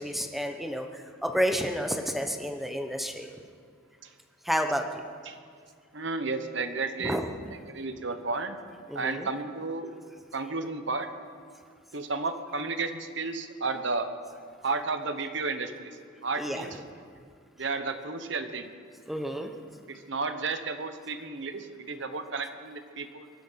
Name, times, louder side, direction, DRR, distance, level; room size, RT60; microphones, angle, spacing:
voice 1, 0.0-3.3 4.4-5.0 7.0-7.2 8.9-9.3 16.4-16.7 19.1-19.5, equal, ahead, 4 dB, 0.9 m, -30 dB
voice 2, 5.9-7.3 7.7-8.6 8.9-9.9 10.3-11.1 11.9-14.1 14.6-16.8 17.6-18.7 19.9-23.3, right 3 dB, 60° right, 8 dB, 1.1 m, -32 dB
23.5 x 10.0 x 5.8 m, 2.2 s
head